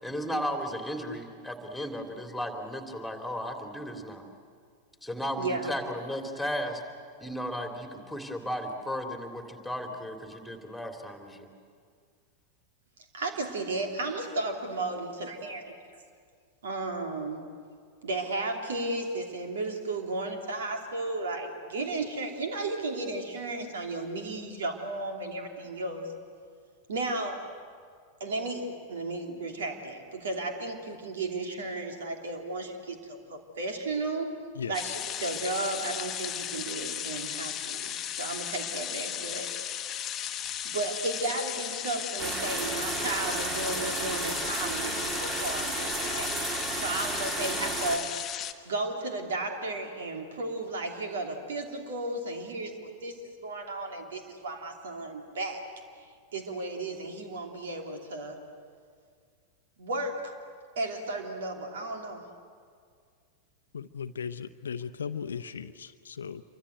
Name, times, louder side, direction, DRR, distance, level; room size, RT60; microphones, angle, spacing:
voice 1, 0.0-4.2 5.0-6.8 7.2-11.5, equal, ahead, 3.2 m, -35 dB
voice 2, 5.4-5.7 13.1-15.8 16.6-17.5 18.0-26.1 26.9-27.5 28.2-34.3 34.7-34.8 35.2-39.8 40.6-48.1 48.6-55.7 56.0-56.1 56.3-58.4 59.8-60.4 60.8-62.3, right 2 dB, 65° right, 2.9 m, -34 dB
voice 3, 34.5-35.0 63.7-66.4, left 6 dB, 70° left, 0.8 m, -37 dB
sound 1, 34.7-48.5, left 10 dB, 25° left, 1.2 m, -35 dB
sound 2, 42.2-48.0, right 3 dB, 30° right, 2.8 m, -33 dB
27.5 x 24.0 x 8.1 m
figure-of-eight pair, 90°, 0 cm